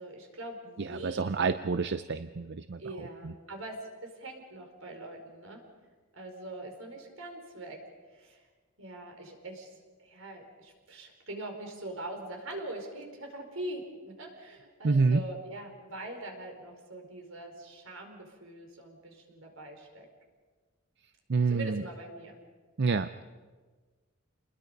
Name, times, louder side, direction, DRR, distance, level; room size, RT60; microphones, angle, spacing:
voice 1, 0.0-1.8 2.8-5.6 6.1-7.8 8.1-8.4 8.8-9.7 10.0-20.0 21.5-22.4, right 1 dB, 80° right, 3 dB, 4.8 m, -43 dB
voice 2, 0.8-3.3 14.8-15.2 21.3-21.8 22.8-23.2, right 4 dB, 55° right, 11 dB, 0.6 m, -28 dB
29.0 x 21.0 x 5.4 m, 1.4 s
head